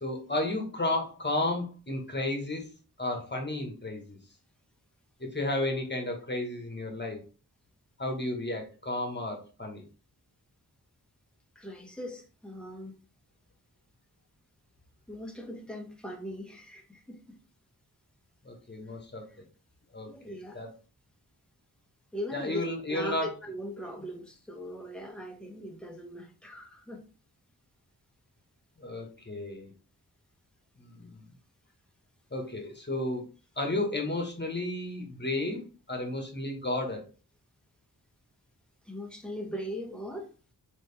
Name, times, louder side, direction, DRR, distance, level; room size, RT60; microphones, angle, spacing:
voice 1, 0.0-2.7 3.0-4.2 5.3-7.2 8.0-9.8 18.4-19.2 19.9-20.1 20.5-20.7 22.3-23.3 28.8-29.7 30.8-31.2 32.3-33.2 33.6-35.6 35.9-37.0, left 2 dB, 25° left, 2 dB, 1.4 m, -32 dB
voice 2, 11.5-12.9 15.1-17.4 20.1-20.6 22.1-22.6 22.9-27.0 38.8-40.3, equal, ahead, 2 dB, 1.2 m, -40 dB
3.9 x 3.2 x 3.4 m, 0.35 s
wide cardioid pair, 45°, 39 cm